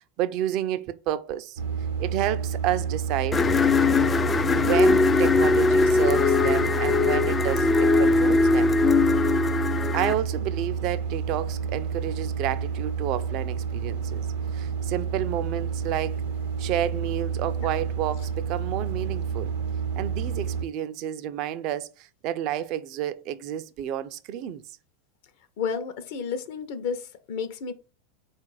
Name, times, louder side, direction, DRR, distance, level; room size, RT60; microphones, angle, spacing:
voice 1, 0.0-1.6 2.0-3.4 4.5-8.8 9.9-14.3 14.5-16.2 16.6-19.5 19.9-24.8, right 11 dB, 55° right, 0.4 m, -30 dB
sound 1, 1.6-20.6, right 7 dB, 80° right, 0.7 m, -30 dB
sound 2, 3.3-10.1, left 4 dB, 20° left, 0.3 m, -21 dB
voice 2, 25.6-27.7, left 6 dB, 65° left, 0.6 m, -31 dB
3.9 x 2.4 x 4.7 m
hypercardioid pair, 100°, 0 cm